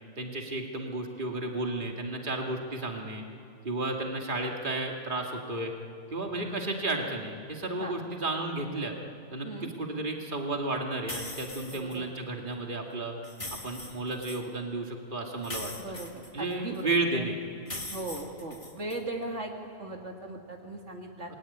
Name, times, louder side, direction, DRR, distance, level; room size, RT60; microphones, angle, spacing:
voice 1, 0.2-3.2 3.6-5.7 6.1-8.9 9.3-13.1 13.5-15.7 16.3-17.4 21.3-21.4, right 2 dB, 40° right, 1 dB, 2.5 m, -32 dB
sound 1, 11.1-12.0 13.2-14.4 15.4-16.8 17.7-19.0, left 2 dB, 25° left, 2.0 m, -41 dB
voice 2, 11.7-12.1 15.8-17.2 17.9-19.5 19.8-21.3, right 2 dB, 65° right, 1 dB, 2.5 m, -38 dB
26.5 x 21.5 x 10.0 m, 2.5 s
omnidirectional pair, 1.3 m